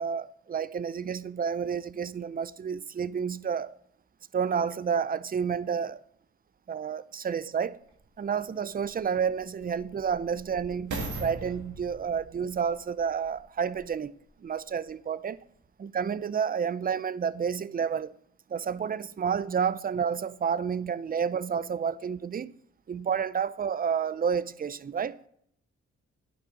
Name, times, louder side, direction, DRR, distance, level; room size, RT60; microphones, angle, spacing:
voice 1, 0.0-3.7 4.3-6.0 6.7-7.8 8.2-14.1 14.4-15.4 15.8-18.1 18.5-22.5 22.9-25.3, right 7 dB, 30° right, 0.4 m, -30 dB
sound 1, 7.9-8.0 8.7-14.0 14.6-14.7, right 2 dB, 85° right, 2.1 m, -41 dB
9.6 x 5.8 x 4.1 m
cardioid pair, 65°, 30 cm